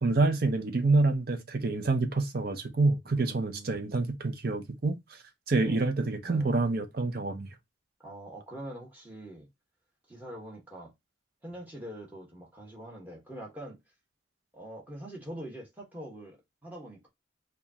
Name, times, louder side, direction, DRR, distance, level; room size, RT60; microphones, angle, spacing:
voice 1, 0.0-5.0 5.5-7.5, right 3 dB, 50° right, 0.6 m, -27 dB
voice 2, 3.0-3.9 5.6-5.8 6.2-6.5 8.0-9.5 10.1-10.9 11.4-13.8 14.5-17.1, right 1 dB, 10° right, 1.1 m, -44 dB
4.9 x 2.4 x 2.7 m
head